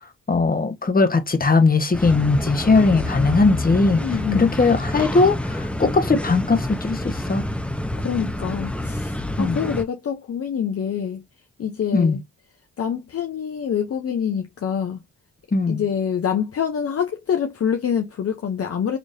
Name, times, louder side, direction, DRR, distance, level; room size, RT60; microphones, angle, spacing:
voice 1, 0.3-4.0 4.3-7.4 9.4-9.6 11.9-12.2 15.5-15.8, left 3 dB, 25° left, 1.1 m, -19 dB
sound 1, 1.9-9.8, left 1 dB, 5° left, 0.8 m, -27 dB
voice 2, 4.0-4.5 8.0-11.2 11.6-12.2 12.8-15.0 15.7-19.0, left 8 dB, 45° left, 0.7 m, -26 dB
4.0 x 3.1 x 2.6 m
supercardioid pair, 45°, 32 cm